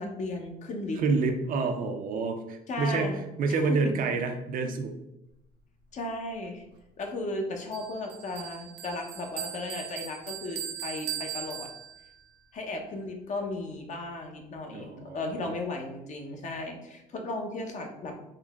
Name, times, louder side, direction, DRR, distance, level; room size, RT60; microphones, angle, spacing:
voice 1, 0.0-1.0 2.7-3.2 3.5-3.8 5.9-6.6 7.0-11.7 12.5-18.1, left 2 dB, 45° left, 3 dB, 0.7 m, -35 dB
voice 2, 1.0-4.9 14.7-15.5, right 4 dB, 55° right, 5 dB, 0.5 m, -28 dB
Bell, 7.7-12.2, right 10 dB, 90° right, 0.7 m, -39 dB
3.8 x 2.1 x 3.4 m, 0.86 s
cardioid pair, 110°, 17 cm